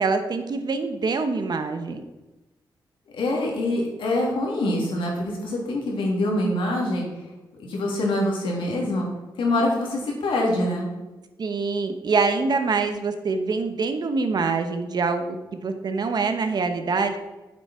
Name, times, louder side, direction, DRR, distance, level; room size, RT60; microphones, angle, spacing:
voice 1, 0.0-2.0 11.4-15.3 15.6-17.2, right 4 dB, 55° right, 7 dB, 1.1 m, -25 dB
voice 2, 3.1-7.0 7.7-9.1 9.4-10.9, left 1 dB, 85° left, -2 dB, 3.0 m, -24 dB
8.9 x 7.9 x 4.4 m, 1.1 s
cardioid pair, 100°, 8 cm